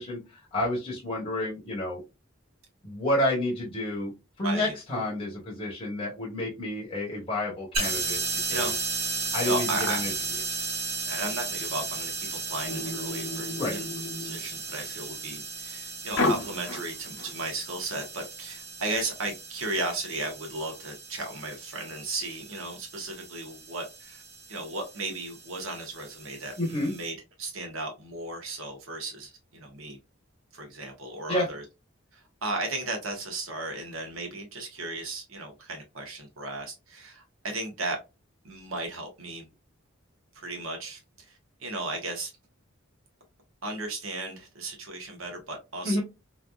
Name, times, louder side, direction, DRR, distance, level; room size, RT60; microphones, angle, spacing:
voice 1, 0.0-2.0 2.8-4.1 4.4-8.2 8.5-8.7 9.3-10.1 13.6-13.7 26.6-26.9 31.3-31.5 45.8-46.0, left 1 dB, 25° left, 0.9 m, -29 dB
voice 2, 4.4-4.7 8.5-8.8 9.4-10.0 11.1-13.9 14.2-24.2 24.5-30.0 30.5-31.6 32.1-38.0 38.4-39.5 40.3-41.0 41.3-42.3 43.6-46.0, right 2 dB, 80° right, 1.1 m, -35 dB
sound 1, 7.7-27.1, right 3 dB, 30° right, 1.3 m, -35 dB
sound 2, 12.6-14.9 16.1-17.3, left 2 dB, 70° left, 0.7 m, -32 dB
3.2 x 2.5 x 2.3 m
head